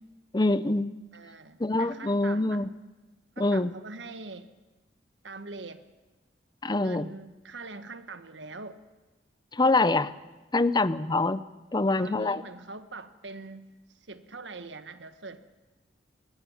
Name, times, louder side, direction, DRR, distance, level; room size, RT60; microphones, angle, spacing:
voice 1, 0.3-1.0 1.6-2.7 3.4-3.7 6.6-7.1 9.5-10.1 10.5-11.4 11.7-12.4, left 2 dB, 25° left, 16 dB, 0.6 m, -25 dB
voice 2, 1.1-2.6 3.3-4.5 5.2-5.8 6.8-8.8 12.0-13.7 14.0-15.4, right 3 dB, 85° right, 10 dB, 1.5 m, -43 dB
24.0 x 20.0 x 7.3 m, 1.2 s
head